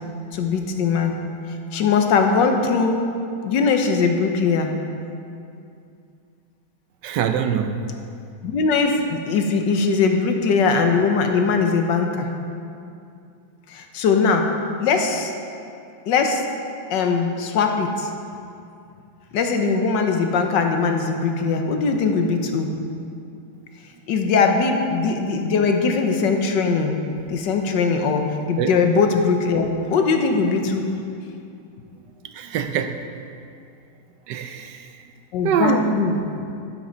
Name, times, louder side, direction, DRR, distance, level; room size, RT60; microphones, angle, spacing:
voice 1, 0.3-1.1 1.7-3.0 3.4-4.7 8.4-12.3 13.7-14.5 14.8-15.3 16.1-16.4 16.9-18.1 19.3-22.7 24.1-26.9 27.3-30.9 35.3-36.2, left 4 dB, 70° left, 4 dB, 1.5 m, -20 dB
voice 2, 7.0-7.8 28.6-28.7 32.3-33.0 34.3-34.8 35.4-35.9, right 8 dB, 75° right, 8 dB, 1.1 m, -23 dB
11.5 x 10.5 x 3.9 m, 2.5 s
omnidirectional pair, 2.0 m